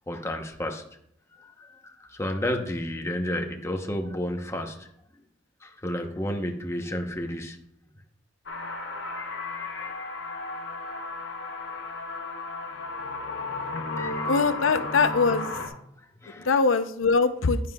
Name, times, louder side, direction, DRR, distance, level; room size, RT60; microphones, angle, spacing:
voice 1, 0.1-0.8 1.3-5.2 5.6-7.6 14.0-14.5 16.0-16.6, left 1 dB, 15° left, 3 dB, 0.8 m, -32 dB
sound 1, 8.5-15.7, left 3 dB, 65° left, 1.3 m, -34 dB
voice 2, 14.3-15.5 16.4-17.6, left 4 dB, 80° left, 11 dB, 0.6 m, -22 dB
10.5 x 9.4 x 2.3 m, 0.72 s
head